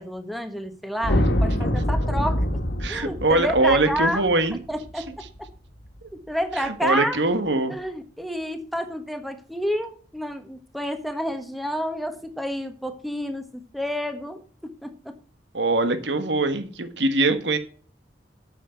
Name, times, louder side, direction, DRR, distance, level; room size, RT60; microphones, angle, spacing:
voice 1, 0.0-2.4 2.9-4.2 4.7-5.2 6.3-7.2 7.7-15.1, equal, ahead, 7 dB, 1.2 m, -29 dB
sound 1, 1.0-5.4, equal, 75° left, 1.4 m, -25 dB
voice 2, 2.8-4.6 6.0-6.1 6.8-7.7 15.5-17.6, right 2 dB, 85° right, 9 dB, 1.4 m, -22 dB
8.9 x 6.7 x 5.8 m, 0.42 s
head